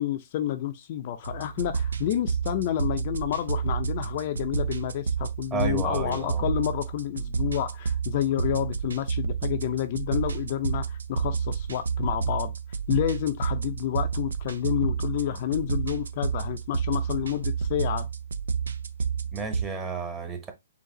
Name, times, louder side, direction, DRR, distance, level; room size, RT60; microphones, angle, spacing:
voice 1, 0.0-12.5 12.9-18.1, left 12 dB, 45° left, 0.5 m, -29 dB
sound 1, 1.2-19.6, right 6 dB, 85° right, 0.5 m, -30 dB
voice 2, 5.5-6.4 19.3-20.5, right 4 dB, 15° right, 1.0 m, -32 dB
4.0 x 2.5 x 3.8 m
hypercardioid pair, 140°, 0 cm